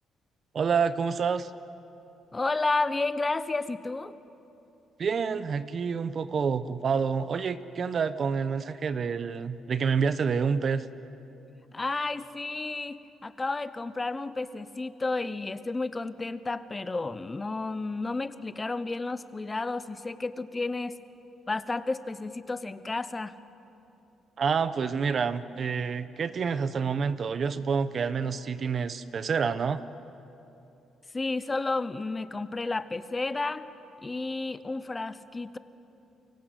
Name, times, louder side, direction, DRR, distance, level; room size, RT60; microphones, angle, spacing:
voice 1, 0.5-1.5 5.0-10.9 24.4-29.8, right 6 dB, 50° right, 13 dB, 1.0 m, -28 dB
voice 2, 2.3-4.2 11.7-21.0 21.5-23.3 31.1-33.7 34.0-35.6, left 3 dB, 25° left, 13 dB, 1.0 m, -31 dB
28.5 x 24.0 x 8.2 m, 2.9 s
cardioid pair, 90°, 0 cm